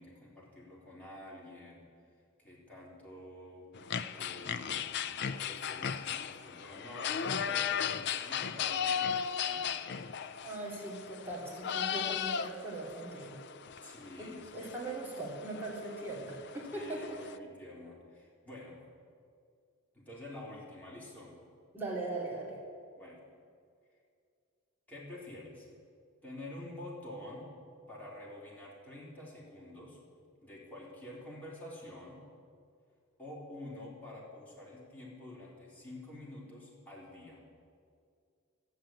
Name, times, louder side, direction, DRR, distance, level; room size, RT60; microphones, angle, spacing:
voice 1, 0.0-1.9 2.4-3.7 4.1-5.1 5.3-9.1 9.4-9.7 13.8-14.7 16.6-18.8 19.9-21.4 23.0-23.2 24.9-25.7 26.2-27.5 27.9-30.0 30.4-32.2 33.2-37.4, left 1 dB, 5° left, -6 dB, 3.8 m, -48 dB
sound 1, 3.7-17.4, left 8 dB, 55° left, 0.5 m, -37 dB
voice 2, 10.4-13.4 14.2-14.3 14.5-17.2 21.7-22.5, right 2 dB, 10° right, -5 dB, 2.7 m, -40 dB
13.0 x 9.3 x 8.8 m, 2.2 s
head